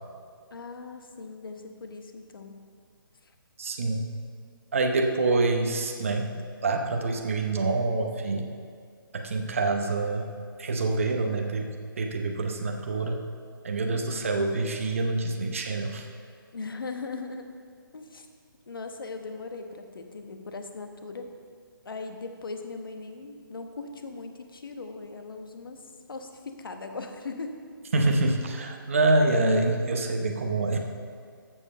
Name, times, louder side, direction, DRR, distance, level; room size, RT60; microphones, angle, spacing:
voice 1, 0.5-2.6 3.2-3.3 13.9-14.3 16.5-17.5 17.9-18.3 18.7-21.3 21.8-25.8 26.1-26.3 26.6-27.6, left 3 dB, 70° left, 5 dB, 1.2 m, -39 dB
voice 2, 3.6-4.1 4.7-8.5 9.1-10.3 10.6-11.7 12.0-13.2 13.6-16.1 27.9-30.8, right 2 dB, 35° right, 3 dB, 0.8 m, -26 dB
14.5 x 5.3 x 5.5 m, 2.1 s
hypercardioid pair, 180°, 12 cm